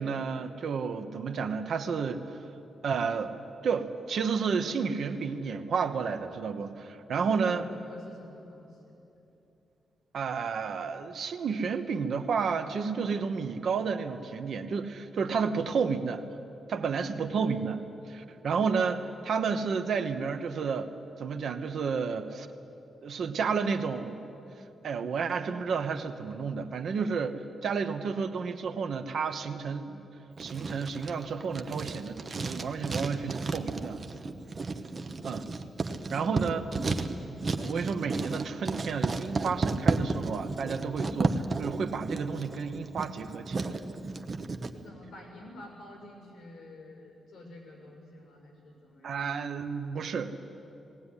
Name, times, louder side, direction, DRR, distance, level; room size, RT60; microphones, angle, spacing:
voice 1, 0.0-2.4 2.8-3.3 3.6-7.6 10.1-16.3 16.7-20.9 21.2-22.5 23.0-24.2 24.8-30.0 30.4-34.0 35.2-35.5 36.1-36.6 37.6-43.8 49.0-50.4, right 5 dB, 60° right, 8 dB, 1.1 m, -31 dB
voice 2, 7.3-9.0 16.7-17.2 35.9-36.4 44.7-49.2, left 1 dB, 60° left, 0 dB, 6.7 m, -49 dB
Writing, 30.4-44.7, right 3 dB, 30° right, 0.9 m, -33 dB
19.5 x 17.5 x 9.9 m, 3.0 s
wide cardioid pair, 175°, 0 cm